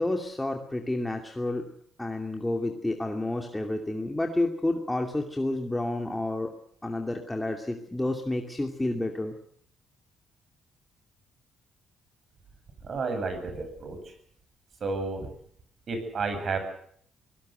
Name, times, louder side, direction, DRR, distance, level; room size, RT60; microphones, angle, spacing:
voice 1, 0.0-1.6 2.0-6.5 6.8-9.3, left 2 dB, 10° left, 3 dB, 2.6 m, -30 dB
voice 2, 12.8-14.1 14.8-15.3 15.9-16.6, right 4 dB, 50° right, 7 dB, 7.9 m, -31 dB
23.5 x 18.0 x 8.0 m, 0.64 s
cardioid pair, 90°, 0 cm